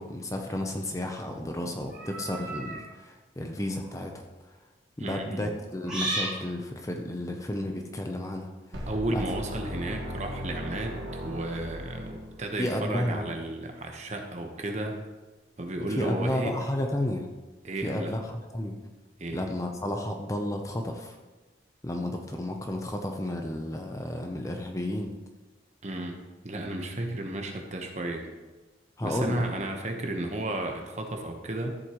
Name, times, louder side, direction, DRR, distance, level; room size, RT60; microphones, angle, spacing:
voice 1, 0.0-4.2 5.0-9.2 12.6-13.3 16.0-17.3 17.8-18.7 19.3-21.2 21.8-25.1 29.0-29.4, left 1 dB, 15° left, 3 dB, 0.7 m, -32 dB
sound 1, 1.9-2.8 3.7-4.0 5.8-6.4, right 2 dB, 5° right, 3.6 m, -33 dB
voice 2, 5.0-5.5 8.9-15.0 15.6-16.6 17.6-18.2 19.2-19.4 25.8-26.2 26.4-28.3 29.0-31.8, right 1 dB, 35° right, 3 dB, 1.1 m, -33 dB
sound 2, 8.7-12.7, equal, 70° right, 1.6 m, -37 dB
13.5 x 7.9 x 3.1 m, 1.2 s
head